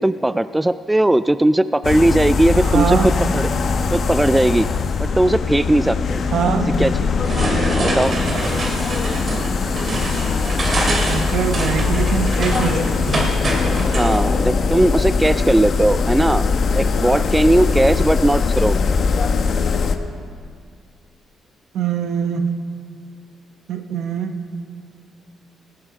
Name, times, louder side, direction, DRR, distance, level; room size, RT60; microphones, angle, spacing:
voice 1, 0.0-3.5 3.9-4.7 5.0-6.2 6.7-7.1 7.8-8.2 13.9-16.5 16.7-18.8, right 1 dB, 10° right, 14 dB, 0.3 m, -18 dB
sound 1, 1.8-20.0, left 4 dB, 55° left, 0.9 m, -21 dB
voice 2, 2.7-3.1 6.3-6.7 11.1-13.3 21.7-22.5 23.7-24.4, right 7 dB, 75° right, 7 dB, 1.0 m, -22 dB
sound 2, 7.2-14.2, right 2 dB, 40° right, 2.2 m, -25 dB
17.5 x 8.7 x 5.0 m, 2.2 s
cardioid pair, 90°, 0 cm